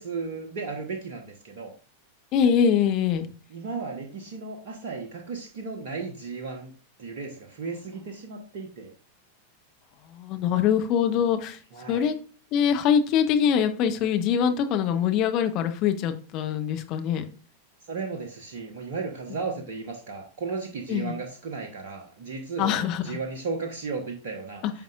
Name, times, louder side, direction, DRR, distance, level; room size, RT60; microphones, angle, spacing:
voice 1, 0.0-1.7 3.5-6.7 7.0-8.9 11.7-12.1 17.8-24.6, right 4 dB, 50° right, 2 dB, 1.1 m, -35 dB
voice 2, 2.3-3.3 10.1-11.6 11.9-12.2 12.5-17.3 20.9-21.2 22.6-23.1 24.6-24.7, left 8 dB, 40° left, 7 dB, 0.9 m, -23 dB
9.2 x 5.3 x 2.5 m, 0.38 s
figure-of-eight pair, 90°, 0 cm